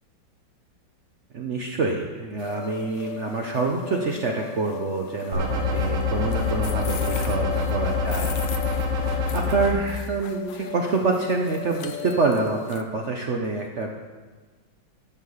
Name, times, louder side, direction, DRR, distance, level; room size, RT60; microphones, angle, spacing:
voice 1, 1.3-13.9, right 3 dB, 60° right, 1 dB, 0.7 m, -27 dB
sound 1, 2.4-12.8, left 9 dB, 80° left, 1.5 m, -37 dB
sound 2, 5.3-9.7, left 4 dB, 85° right, 2.1 m, -25 dB
11.5 x 6.5 x 5.5 m, 1.3 s
omnidirectional pair, 2.3 m